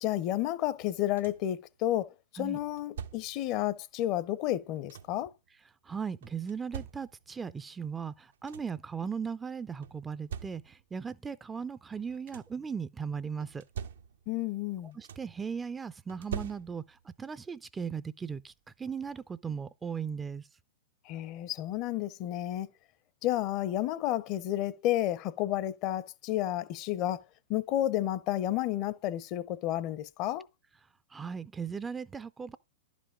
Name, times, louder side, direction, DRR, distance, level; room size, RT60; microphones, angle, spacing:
voice 1, 0.0-5.3 14.3-15.0 21.1-22.7 23.2-27.2 27.5-30.4, left 13 dB, 40° left, 0.6 m, -31 dB
sound 1, 0.8-1.6 2.6-3.5 4.4-5.3 6.2-7.4 8.0-8.1 8.3-8.9 9.8-11.0 11.9-12.7 13.4-14.4 14.7-15.5 16.1-17.1 18.4-18.5 19.0-19.2, right 8 dB, 65° right, 0.5 m, -44 dB
voice 2, 5.8-13.6 14.8-20.5 31.1-32.6, right 6 dB, 15° right, 0.4 m, -37 dB
11.0 x 5.1 x 3.6 m
figure-of-eight pair, 105°, 0 cm